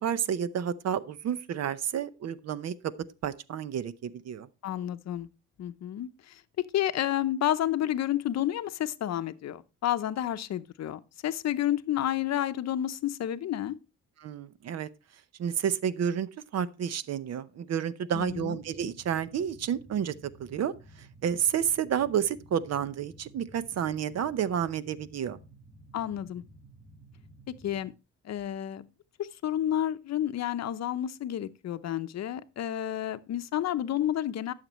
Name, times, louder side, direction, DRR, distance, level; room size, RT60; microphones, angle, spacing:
voice 1, 0.0-2.9 3.2-4.5 14.2-14.9 15.4-20.7 21.2-25.4, right 8 dB, 55° right, 0.7 m, -30 dB
voice 2, 4.6-5.3 5.6-13.8 18.1-18.6 25.9-26.4 27.6-27.9 28.2-28.9 29.2-34.5, left 11 dB, 60° left, 0.7 m, -30 dB
sound 1, 18.1-27.9, right 2 dB, 20° right, 1.8 m, -54 dB
12.5 x 6.6 x 3.0 m
cardioid pair, 90°, 30 cm